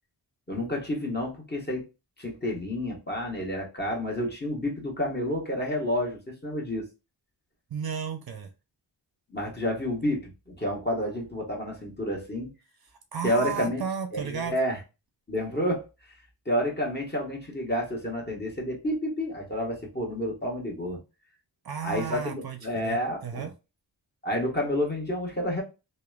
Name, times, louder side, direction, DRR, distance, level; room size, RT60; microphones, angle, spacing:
voice 1, 0.5-1.8 2.2-6.9 9.3-12.5 13.2-13.8 14.1-14.8 15.3-16.1 16.4-21.0 21.8-23.5 24.2-25.6, left 1 dB, 20° left, -1 dB, 1.3 m, -30 dB
voice 2, 7.7-8.5 13.1-14.5 21.6-23.5, right 7 dB, 55° right, 7 dB, 0.6 m, -34 dB
2.9 x 2.1 x 2.3 m, 0.28 s
cardioid pair, 60°, 45 cm